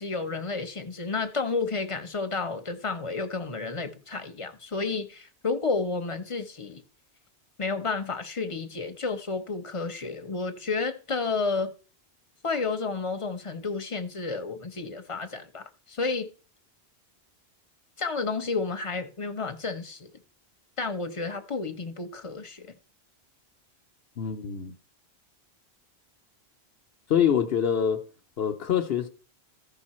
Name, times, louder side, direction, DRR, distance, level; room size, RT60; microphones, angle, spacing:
voice 1, 0.0-6.8 7.6-11.7 12.4-16.3 18.0-20.1 20.8-22.7, left 4 dB, 30° left, 0.9 m, -31 dB
voice 2, 24.2-24.7 27.1-28.0 28.4-29.1, left 8 dB, 70° left, 1.0 m, -25 dB
14.0 x 5.5 x 4.3 m
omnidirectional pair, 1.1 m